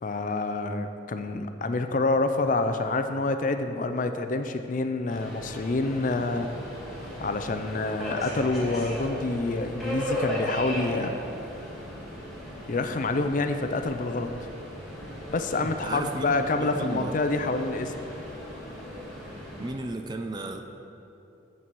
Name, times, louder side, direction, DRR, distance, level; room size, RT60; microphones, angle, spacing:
voice 1, 0.0-6.5 7.2-11.1 12.7-14.3 15.3-17.9, left 3 dB, 45° left, 8 dB, 0.4 m, -27 dB
Subway metro underground, 5.1-19.7, equal, ahead, 1.8 m, -37 dB
voice 2, 15.6-17.1 19.6-20.6, right 2 dB, 20° right, 5 dB, 0.4 m, -34 dB
7.4 x 6.8 x 6.1 m, 2.9 s
head